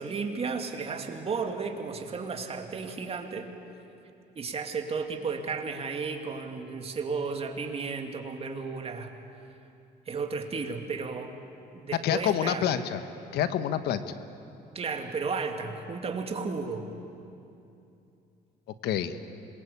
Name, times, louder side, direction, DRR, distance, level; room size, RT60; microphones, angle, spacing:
voice 1, 0.0-3.5 4.4-9.1 10.1-11.3 11.7-12.7 14.7-16.9, right 4 dB, 35° right, 4 dB, 2.6 m, -33 dB
voice 2, 12.0-13.0 13.3-14.1 18.8-19.2, left 10 dB, 75° left, 11 dB, 1.3 m, -27 dB
26.5 x 22.0 x 8.6 m, 2.7 s
cardioid pair, 110°, 17 cm